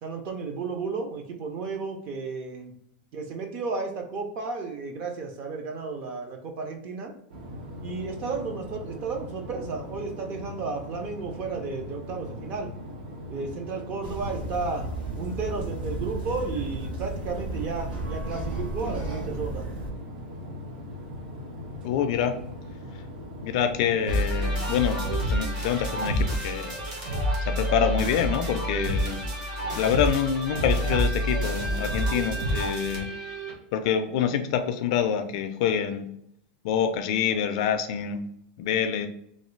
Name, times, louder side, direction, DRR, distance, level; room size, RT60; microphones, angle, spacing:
voice 1, 0.0-2.8 3.1-7.1 7.8-12.7 13.3-19.7, right 4 dB, 30° right, 4 dB, 0.5 m, -33 dB
sound 1, 7.3-24.5, equal, 70° right, 0.9 m, -40 dB
sound 2, 14.0-19.9, right 2 dB, 90° right, 1.2 m, -34 dB
voice 2, 21.8-22.3 23.4-26.8 27.5-29.2 29.7-33.1 33.7-36.1 36.6-38.2 38.6-39.1, left 8 dB, 45° left, 8 dB, 0.3 m, -26 dB
sound 3, 24.1-33.5, equal, 50° right, 1.1 m, -28 dB
3.1 x 2.3 x 3.1 m, 0.73 s
supercardioid pair, 175°, 5 cm